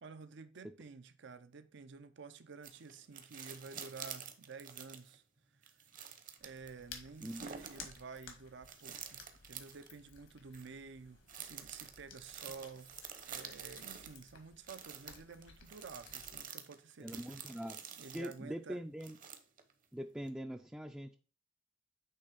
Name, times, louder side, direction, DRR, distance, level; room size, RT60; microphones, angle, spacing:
voice 1, 0.0-5.2 5.6-5.8 6.4-17.5 18.0-18.8, right 4 dB, 65° right, 0.6 m, -51 dB
sound 1, 2.6-5.2 5.6-6.7 7.2-8.0 8.6-9.9 10.5-10.7 11.3-14.2 14.7-18.4 19.0-19.7 20.3-20.4, right 7 dB, 45° right, 0.9 m, -49 dB
sound 2, 6.4-16.4, left 6 dB, 80° left, 1.7 m, -57 dB
voice 2, 17.0-17.8 18.1-19.2 19.9-21.2, equal, 5° right, 0.4 m, -43 dB
8.4 x 3.3 x 5.1 m
head